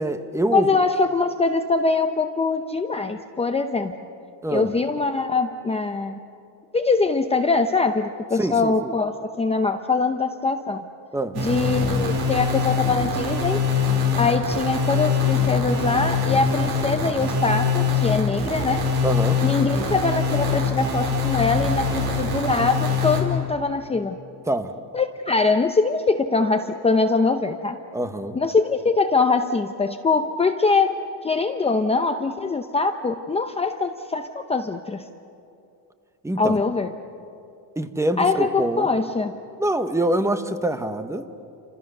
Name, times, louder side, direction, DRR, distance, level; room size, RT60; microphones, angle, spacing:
voice 1, 0.0-0.7 4.4-4.7 8.4-8.9 11.1-11.4 19.0-19.4 24.5-24.7 27.9-28.3 36.2-36.6 37.8-38.9 39.6-41.3, right 1 dB, 5° right, 9 dB, 1.1 m, -25 dB
voice 2, 0.5-3.9 4.5-6.2 6.7-9.1 9.4-10.8 11.4-13.6 14.2-18.8 19.4-24.2 24.9-27.8 28.3-35.0 36.4-36.9 38.2-39.3, left 4 dB, 15° left, 5 dB, 0.7 m, -23 dB
sound 1, 11.3-23.2, left 4 dB, 65° right, 5.1 m, -23 dB
29.5 x 26.5 x 6.7 m, 2.6 s
cardioid pair, 160°, 41 cm